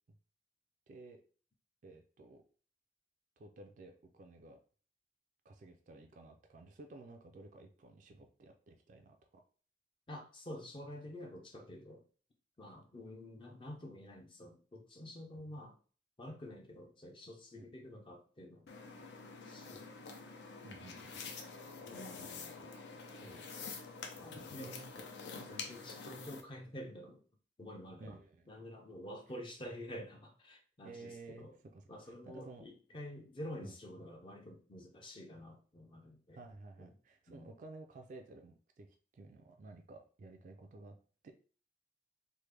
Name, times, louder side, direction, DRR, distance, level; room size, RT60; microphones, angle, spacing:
voice 1, 0.9-1.2 1.8-2.4 3.4-4.6 5.4-9.4 15.3-15.5 17.5-17.7 20.6-21.1 21.7-21.9 24.5-24.9 28.0-28.6 30.8-32.7 33.6-33.7 36.3-41.0 41.2-41.3, right 2 dB, 45° right, 4 dB, 0.3 m, -54 dB
voice 2, 10.1-12.0 12.6-15.8 16.2-18.7 19.4-19.9 21.8-22.8 23.2-23.7 24.2-25.1 25.5-27.2 27.6-28.2 28.5-31.5 31.9-36.4 36.8-36.9 37.3-37.5, left 1 dB, 30° left, 2 dB, 0.5 m, -49 dB
sound 1, 18.7-26.4, left 4 dB, 75° left, 0.5 m, -47 dB
3.2 x 2.1 x 3.2 m, 0.41 s
head